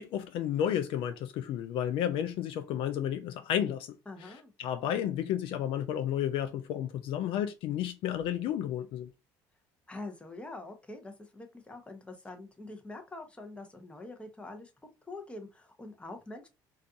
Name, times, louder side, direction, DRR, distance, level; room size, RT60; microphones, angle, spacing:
voice 1, 0.0-3.9 4.2-4.3 4.6-9.1, left 10 dB, 70° left, 0.4 m, -32 dB
voice 2, 4.1-4.5 9.9-14.7 15.1-16.5, left 2 dB, 10° left, 0.7 m, -45 dB
2.4 x 2.3 x 2.6 m
supercardioid pair, 75°, 9 cm